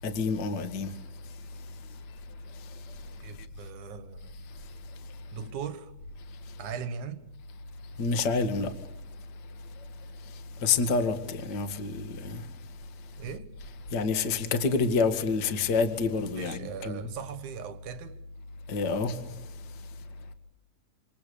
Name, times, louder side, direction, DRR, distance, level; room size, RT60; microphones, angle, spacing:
voice 1, 0.0-0.9 8.0-8.7 10.6-12.4 13.9-17.1 18.7-19.2, left 4 dB, 40° left, 1.7 m, -28 dB
voice 2, 3.2-4.4 5.3-5.9 6.6-7.2 13.2-13.5 16.3-18.2, right 7 dB, 60° right, 2.4 m, -39 dB
27.5 x 27.5 x 7.0 m
omnidirectional pair, 4.5 m